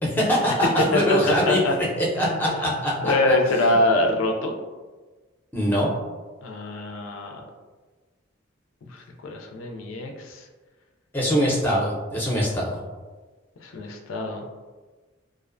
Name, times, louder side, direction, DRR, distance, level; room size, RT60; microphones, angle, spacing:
voice 1, 0.0-1.6 2.1-3.7 5.5-5.9 11.1-12.8, equal, 10° left, -5 dB, 0.5 m, -23 dB
voice 2, 0.9-1.7 2.2-2.7 3.0-4.5 6.4-7.4 8.8-10.5 13.6-14.5, left 2 dB, 80° left, 2 dB, 0.3 m, -25 dB
2.4 x 2.1 x 2.4 m, 1.3 s
head